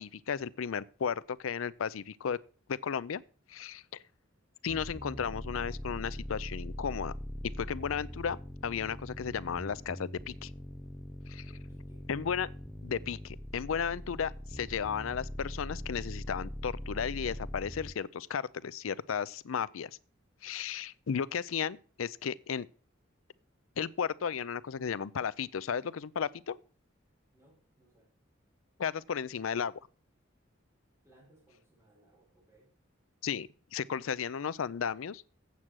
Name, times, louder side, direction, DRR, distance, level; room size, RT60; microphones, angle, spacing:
voice 1, 0.0-2.4 2.7-3.2 3.5-3.8 4.6-7.1 7.6-8.4 8.6-10.5 11.3-11.5 12.1-12.5 12.8-19.9 20.4-22.7 23.8-26.6 28.8-29.7 33.2-35.2, left 7 dB, 85° left, 0.5 m, -34 dB
sound 1, 4.7-17.9, equal, 5° left, 0.8 m, -42 dB
voice 2, 11.5-12.1 27.3-28.2 31.0-32.7, right 1 dB, 15° right, 5.3 m, -64 dB
8.3 x 7.4 x 6.1 m
head